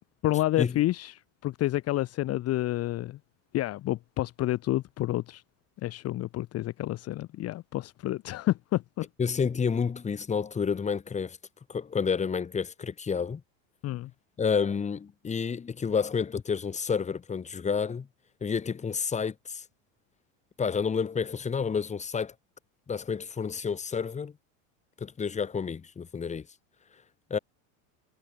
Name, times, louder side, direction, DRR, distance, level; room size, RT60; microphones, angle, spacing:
voice 1, 0.2-3.2 3.5-5.4 5.8-9.1 13.8-14.1, left 15 dB, 35° left, 1.3 m, -29 dB
voice 2, 9.2-11.4 11.7-13.4 14.4-18.1 18.4-19.6 20.6-22.3 22.9-24.3 25.0-26.5 27.3-27.4, left 6 dB, 15° left, 2.3 m, -29 dB
supercardioid pair, 140°, 40 cm